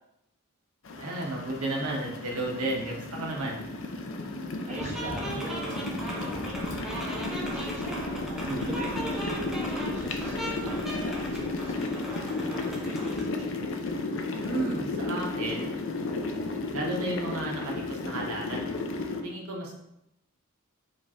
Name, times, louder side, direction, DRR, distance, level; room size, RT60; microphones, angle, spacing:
sound 1, 0.8-19.2, left 2 dB, 60° left, 0.5 m, -33 dB
voice 1, 1.0-3.6 8.4-8.8 14.3-15.8 16.7-18.8 19.2-19.8, right 2 dB, 85° right, -1 dB, 0.9 m, -33 dB
voice 2, 4.7-8.2 8.6-12.2 12.8-13.7 19.1-19.5, right 1 dB, 30° right, -3 dB, 1.0 m, -42 dB
sound 2, 4.8-13.3, right 1 dB, ahead, 0.6 m, -37 dB
Engine, 5.5-11.8, equal, 40° left, 1.0 m, -49 dB
5.0 x 2.4 x 4.1 m, 0.84 s
head